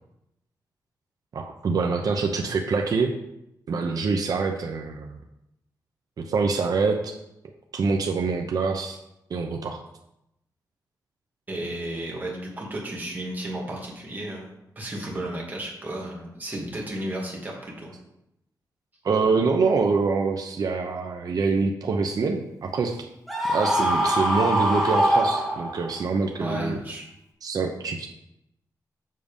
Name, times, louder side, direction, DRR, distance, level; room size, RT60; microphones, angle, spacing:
voice 1, 1.3-3.1 3.7-5.2 6.2-7.1 7.7-9.0 9.3-9.8 19.0-23.1 23.5-26.8 27.4-28.1, right 4 dB, 60° right, 3 dB, 0.8 m, -25 dB
voice 2, 11.5-17.9 26.4-27.0, right 1 dB, 25° right, -3 dB, 2.8 m, -33 dB
Screaming, 23.3-26.0, right 1 dB, ahead, 2.3 m, -23 dB
7.7 x 6.5 x 5.4 m, 0.83 s
wide cardioid pair, 110°, 7 cm